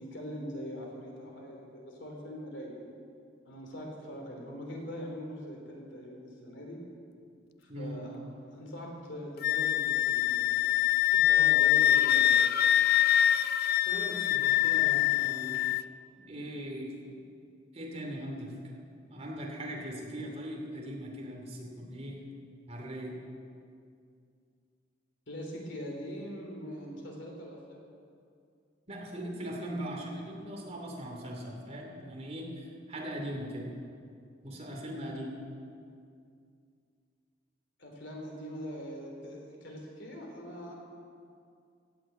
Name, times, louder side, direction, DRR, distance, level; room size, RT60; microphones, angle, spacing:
voice 1, 0.0-3.0 3.5-6.8 7.6-10.7 11.1-12.6 25.3-27.8 37.8-40.7, equal, 75° left, 0 dB, 3.5 m, -42 dB
voice 2, 7.7-8.0 13.9-15.6 16.3-16.9 17.7-18.5 19.1-22.2 22.7-23.1 28.9-33.7 34.4-35.4, equal, 35° right, -1 dB, 2.7 m, -40 dB
Wind instrument woodwind instrument, 9.4-15.8, left 12 dB, 55° left, 0.4 m, -25 dB
16.5 x 8.2 x 8.7 m, 2.4 s
head